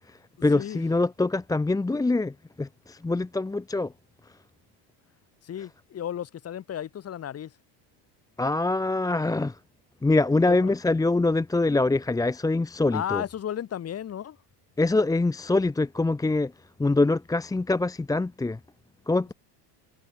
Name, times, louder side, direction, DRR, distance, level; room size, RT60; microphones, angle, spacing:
voice 1, 0.0-3.9 8.4-9.6 10.0-13.2 14.8-16.5 16.8-18.6 19.1-19.3, left 2 dB, 10° left, 1.2 m, -24 dB
voice 2, 0.5-0.9 5.4-7.5 10.5-10.7 12.9-14.4, left 10 dB, 30° left, 3.5 m, -34 dB
cardioid pair, 150°, 46 cm